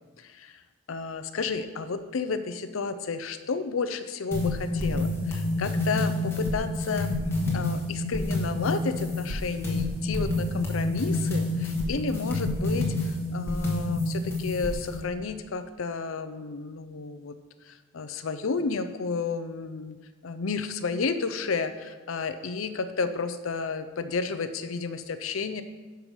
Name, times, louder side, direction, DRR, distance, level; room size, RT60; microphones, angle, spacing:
voice 1, 0.2-0.6 0.9-7.1 7.5-17.3 17.6-20.0 20.2-25.6, left 4 dB, 90° left, 10 dB, 0.6 m, -32 dB
sound 1, 4.3-15.0, left 2 dB, 10° left, 1.6 m, -28 dB
10.5 x 5.7 x 5.4 m, 1.3 s
head